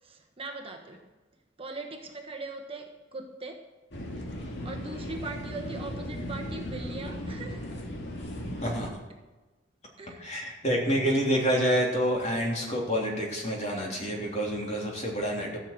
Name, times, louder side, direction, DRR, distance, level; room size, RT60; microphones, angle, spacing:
voice 1, 0.0-1.1 1.6-3.7 4.6-7.6 10.0-10.5, right 3 dB, 30° right, 2 dB, 1.2 m, -40 dB
sound 1, 3.9-8.9, equal, 60° left, 2.1 m, -37 dB
voice 2, 8.6-9.0 10.2-15.6, equal, 35° left, -2 dB, 3.3 m, -28 dB
15.0 x 6.5 x 8.1 m, 1.2 s
head